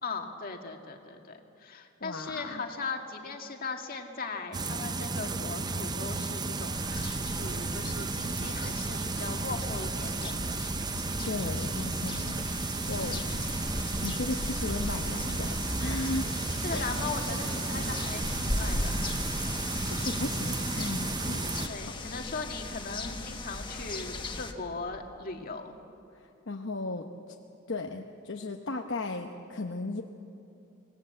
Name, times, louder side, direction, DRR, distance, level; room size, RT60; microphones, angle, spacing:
voice 1, 0.0-10.4 13.0-13.2 16.6-19.0 21.7-25.8, left 4 dB, 45° left, 3 dB, 1.9 m, -39 dB
voice 2, 2.0-2.6 11.2-13.2 14.0-16.3 16.7-16.9 19.8-21.9 26.1-27.1 27.7-30.0, left 2 dB, 60° left, 3 dB, 1.0 m, -36 dB
sound 1, 4.5-21.7, right 3 dB, 20° right, 0.6 m, -33 dB
sound 2, 6.7-24.5, left 2 dB, 25° left, 1.3 m, -38 dB
26.0 x 19.5 x 7.7 m, 2.7 s
head